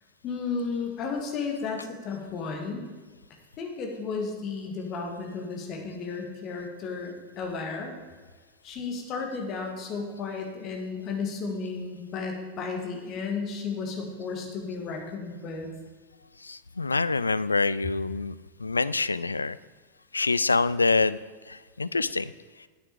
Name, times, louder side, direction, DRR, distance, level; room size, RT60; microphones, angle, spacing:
voice 1, 0.2-2.9 3.6-8.0 8.6-15.7, left 4 dB, 35° left, 2 dB, 2.1 m, -33 dB
voice 2, 16.4-18.3 18.6-19.6 20.1-21.2 21.5-22.3, left 3 dB, 80° left, 17 dB, 0.3 m, -26 dB
10.0 x 8.9 x 4.9 m, 1.5 s
figure-of-eight pair, 90°, 0 cm